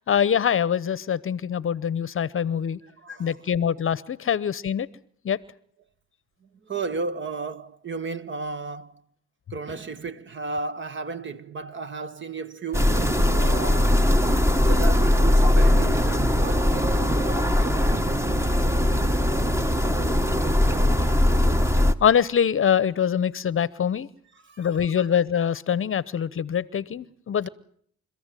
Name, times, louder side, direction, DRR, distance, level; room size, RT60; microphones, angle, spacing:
voice 1, 0.1-2.8 3.1-4.9 5.2-5.4 22.0-24.1 24.6-27.5, left 8 dB, 45° left, 0.9 m, -24 dB
voice 2, 2.8-3.5 6.4-9.0 9.5-13.1 13.3-17.8 24.3-25.1, right 4 dB, 40° right, 1.4 m, -34 dB
sound 1, 12.7-21.9, left 1 dB, 10° right, 1.3 m, -20 dB
29.5 x 14.5 x 9.2 m
cardioid pair, 90°, 30 cm